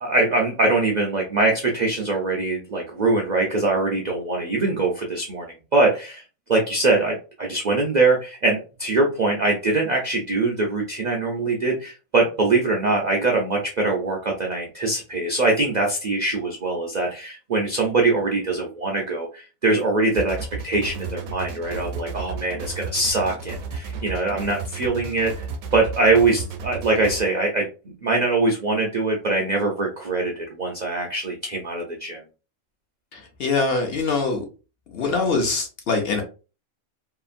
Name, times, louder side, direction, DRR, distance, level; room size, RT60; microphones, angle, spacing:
voice 1, 0.0-5.5 5.7-6.2 6.5-20.4 20.6-25.3 25.7-27.7 28.0-32.2, right 3 dB, 65° right, 0 dB, 0.4 m, -22 dB
sound 1, 20.1-27.2, right 4 dB, 80° right, 1.0 m, -33 dB
voice 2, 33.1-34.4 34.9-36.2, left 3 dB, 60° left, 3 dB, 0.7 m, -23 dB
2.8 x 2.4 x 2.5 m, 0.33 s
omnidirectional pair, 1.4 m